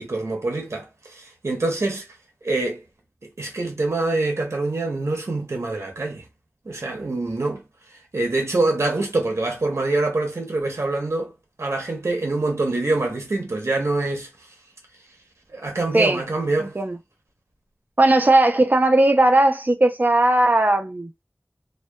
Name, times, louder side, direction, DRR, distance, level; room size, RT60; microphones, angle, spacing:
voice 1, 0.0-2.1 2.4-2.8 3.4-6.2 6.7-7.6 8.1-11.3 11.6-14.3 15.5-16.8, right 2 dB, 80° right, 0.7 m, -25 dB
voice 2, 16.6-17.0 18.0-21.1, right 2 dB, 40° right, 0.5 m, -17 dB
2.7 x 2.1 x 2.2 m
wide cardioid pair, 50°, 5 cm